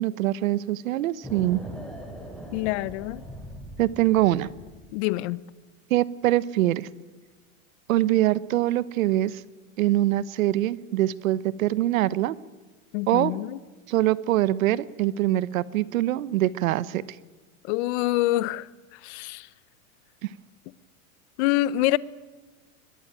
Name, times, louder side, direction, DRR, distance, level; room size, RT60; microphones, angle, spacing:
voice 1, 0.0-1.6 3.8-4.5 5.9-6.9 7.9-9.4 9.8-12.3 13.1-13.3 13.9-17.0 20.2-20.3, right 15 dB, 75° right, 1.1 m, -23 dB
sound 1, 1.2-4.9, right 1 dB, ahead, 5.7 m, -41 dB
voice 2, 2.5-3.2 4.9-5.4 12.9-13.6 17.6-19.5 21.4-22.0, left 16 dB, 55° left, 1.0 m, -26 dB
22.5 x 22.0 x 9.0 m
supercardioid pair, 140°, 41 cm